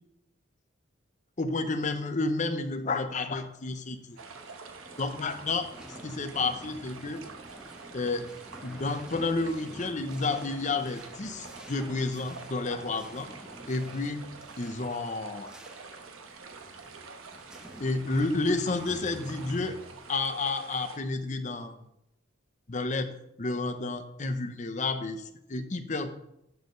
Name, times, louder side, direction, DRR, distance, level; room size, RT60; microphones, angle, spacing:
voice 1, 1.4-4.2 5.0-5.7 6.0-7.2 7.9-8.3 8.6-13.3 13.7-14.3 14.6-15.5 17.8-19.8 20.1-21.8 22.7-26.2, left 3 dB, 35° left, 8 dB, 0.7 m, -31 dB
sound 1, 4.0-21.4, equal, 5° right, 0.7 m, -50 dB
sound 2, 4.2-21.0, right 4 dB, 80° right, 1.0 m, -47 dB
12.0 x 6.6 x 3.2 m, 0.81 s
head